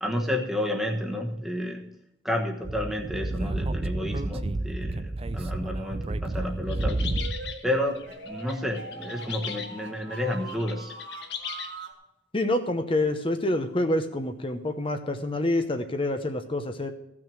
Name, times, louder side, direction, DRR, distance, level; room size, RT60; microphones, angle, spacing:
voice 1, 0.0-1.9 2.2-7.0 7.6-10.9, left 1 dB, ahead, 1 dB, 1.2 m, -30 dB
Speech / Wind, 2.6-7.5, right 2 dB, 30° right, 0.4 m, -30 dB
sound 1, 6.7-11.8, left 7 dB, 60° left, 1.2 m, -39 dB
sound 2, 7.0-12.0, right 3 dB, 70° right, 2.0 m, -42 dB
voice 2, 12.3-16.9, left 1 dB, 30° left, 7 dB, 0.8 m, -27 dB
15.0 x 6.1 x 6.2 m, 0.85 s
head